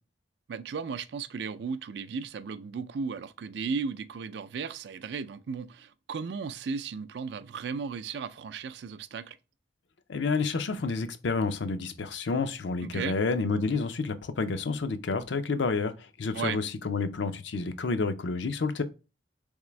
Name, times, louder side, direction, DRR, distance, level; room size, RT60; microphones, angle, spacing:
voice 1, 0.5-9.4 12.8-13.2 16.3-16.6, right 5 dB, 70° right, 0.4 m, -35 dB
voice 2, 10.1-15.9 16.2-18.8, left 4 dB, 80° left, 0.5 m, -29 dB
3.6 x 3.3 x 3.1 m
head